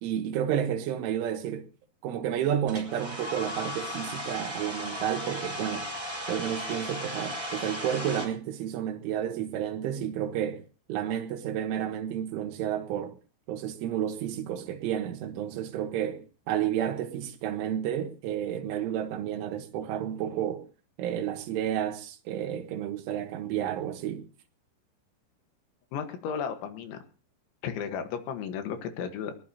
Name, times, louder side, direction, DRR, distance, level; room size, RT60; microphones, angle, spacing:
voice 1, 0.0-1.7 2.0-5.9 6.3-10.6 10.9-13.2 13.5-20.7 21.0-24.3, right 10 dB, 90° right, 3.8 m, -31 dB
Domestic sounds home sounds, 2.7-8.3, equal, 10° right, 3.2 m, -36 dB
voice 2, 25.9-27.0 27.6-29.3, left 7 dB, 80° left, 3.8 m, -34 dB
21.0 x 19.5 x 2.9 m
omnidirectional pair, 5.4 m